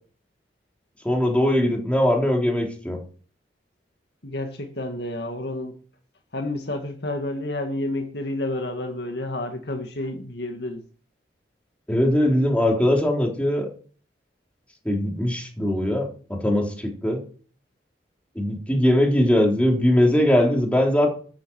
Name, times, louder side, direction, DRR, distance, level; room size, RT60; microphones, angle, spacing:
voice 1, 1.0-3.0 11.9-13.7 14.9-17.2 18.4-21.1, left 1 dB, 5° left, 3.7 m, -21 dB
voice 2, 4.2-5.8 6.3-10.8, left 1 dB, 65° left, 2.0 m, -30 dB
13.5 x 8.7 x 6.3 m
head